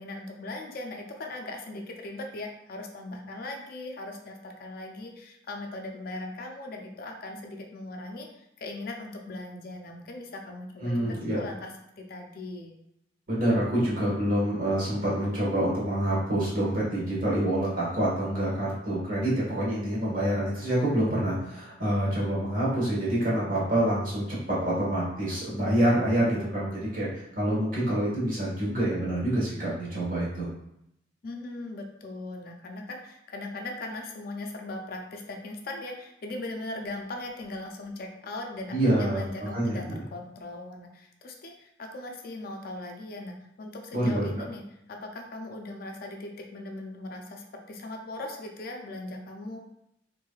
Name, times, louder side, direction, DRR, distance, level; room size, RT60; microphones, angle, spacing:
voice 1, 0.0-12.7 31.2-44.6 44.9-49.6, left 2 dB, 55° left, 2 dB, 0.4 m, -39 dB
voice 2, 10.8-11.4 13.3-30.5 38.7-40.0 43.9-44.3, right 1 dB, 50° right, -7 dB, 1.3 m, -27 dB
3.1 x 2.6 x 2.3 m, 0.79 s
head